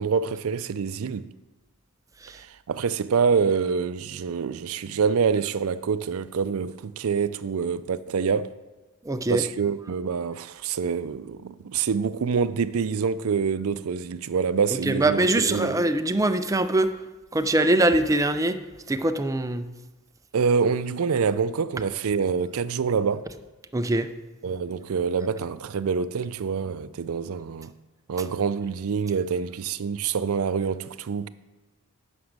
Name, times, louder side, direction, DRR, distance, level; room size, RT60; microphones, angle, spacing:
voice 1, 0.0-1.3 2.3-8.5 9.3-15.8 20.3-23.3 24.4-27.7 28.1-31.3, right 6 dB, 70° right, 0.4 m, -26 dB
voice 2, 9.0-9.4 14.9-16.9 17.3-18.6 18.9-19.7 23.7-24.1, right 2 dB, 15° right, 0.5 m, -22 dB
9.5 x 6.1 x 6.5 m
head